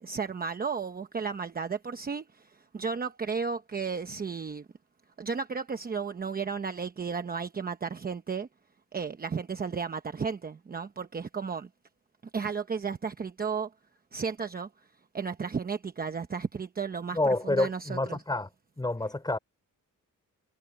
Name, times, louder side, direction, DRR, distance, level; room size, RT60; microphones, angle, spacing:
voice 1, 0.0-2.5 2.7-4.6 5.2-8.5 8.9-11.7 12.3-13.7 14.1-14.7 15.1-18.2, right 5 dB, 30° right, 0.9 m, -33 dB
voice 2, 17.1-18.5 18.8-19.4, left 2 dB, 15° left, 4.8 m, -28 dB
wide cardioid pair, 170°, 32 cm